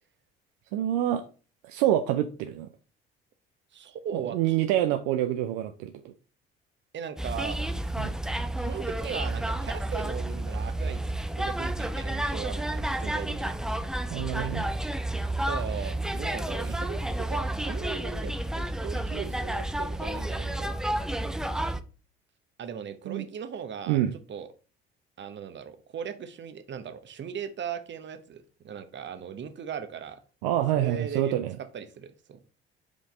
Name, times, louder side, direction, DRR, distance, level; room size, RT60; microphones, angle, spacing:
voice 1, 0.7-1.2 1.6-2.7 4.1-6.1 8.0-8.1 14.1-14.6 23.1-23.2 23.9-24.1 30.4-31.6, right 12 dB, 65° right, 0.5 m, -27 dB
voice 2, 3.7-4.6 4.9-5.0 6.9-7.6 8.6-11.0 11.3-13.6 14.4-14.6 15.4-20.7 22.6-24.0 24.3-24.5 25.2-30.2 30.7-31.4 31.7-32.4, right 7 dB, 40° right, 1.0 m, -38 dB
sound 1, 7.2-21.8, right 1 dB, ahead, 0.5 m, -31 dB
5.1 x 5.1 x 3.8 m
figure-of-eight pair, 50°, 29 cm